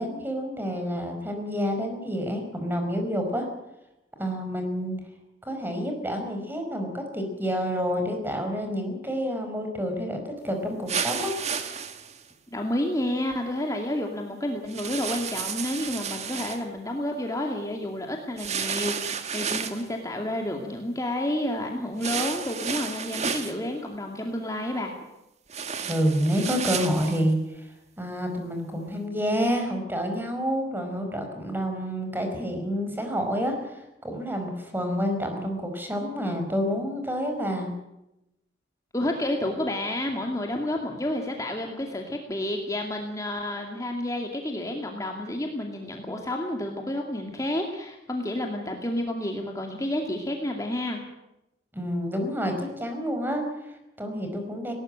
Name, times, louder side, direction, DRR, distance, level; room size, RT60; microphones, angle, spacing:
voice 1, 0.0-3.5 4.2-4.9 5.4-11.3 25.8-27.7 28.0-37.7 51.7-54.7, equal, 10° right, 5 dB, 5.2 m, -28 dB
sound 1, 10.9-12.2 14.7-16.6 18.4-19.9 22.0-23.6 25.5-27.2, right 6 dB, 40° right, 1.7 m, -31 dB
voice 2, 12.5-24.9 38.9-51.0, left 1 dB, 20° left, 2 dB, 2.4 m, -30 dB
19.5 x 18.5 x 8.9 m, 0.88 s
head